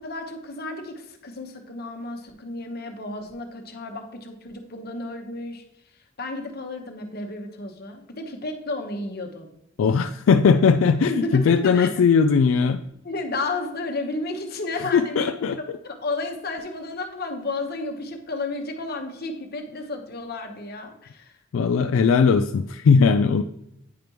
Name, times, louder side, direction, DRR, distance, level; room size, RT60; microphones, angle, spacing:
voice 1, 0.0-5.6 6.2-9.5 11.0-11.9 13.0-15.4 15.8-21.3, left 2 dB, 50° left, 4 dB, 1.1 m, -32 dB
voice 2, 9.8-12.8 14.9-15.6 21.5-23.4, left 5 dB, 85° left, 8 dB, 0.3 m, -19 dB
9.3 x 5.1 x 3.0 m, 0.81 s
head